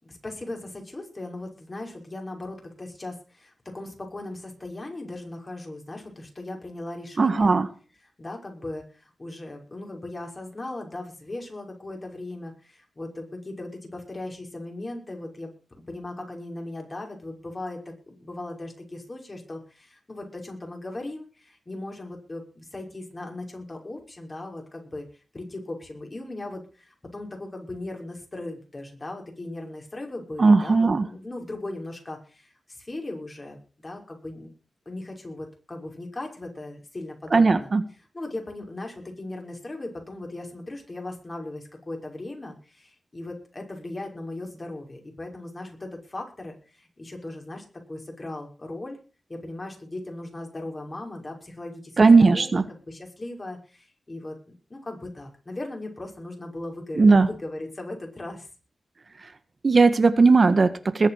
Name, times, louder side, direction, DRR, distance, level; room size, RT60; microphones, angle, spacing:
voice 1, 0.0-7.6 8.2-25.1 25.3-34.5 34.9-37.7 38.1-49.0 49.3-54.4 54.7-58.5, left 2 dB, 35° left, 2 dB, 6.1 m, -38 dB
voice 2, 7.2-7.7 30.4-31.1 37.3-37.8 52.0-52.6 57.0-57.3 59.2-59.3 59.6-61.1, right 4 dB, 50° right, 10 dB, 1.5 m, -17 dB
21.0 x 8.1 x 5.9 m, 0.37 s
wide cardioid pair, 75°, 0 cm